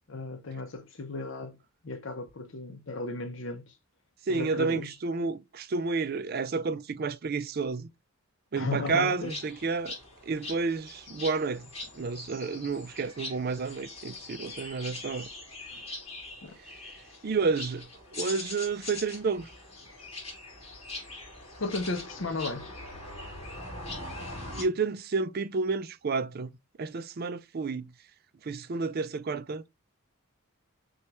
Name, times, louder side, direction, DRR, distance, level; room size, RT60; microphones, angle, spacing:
voice 1, 0.1-1.6 1.8-3.7 4.3-4.9 8.5-9.4 16.4-16.6 21.6-22.7, left 3 dB, 60° left, 0.7 m, -35 dB
voice 2, 4.3-7.9 8.5-10.0 10.2-11.7 11.9-15.3 17.2-19.5 24.5-26.5 26.8-27.9 28.4-29.6, right 4 dB, 45° right, 0.4 m, -30 dB
sound 1, 9.2-24.6, left 2 dB, 30° left, 2.6 m, -42 dB
6.3 x 2.4 x 2.9 m
head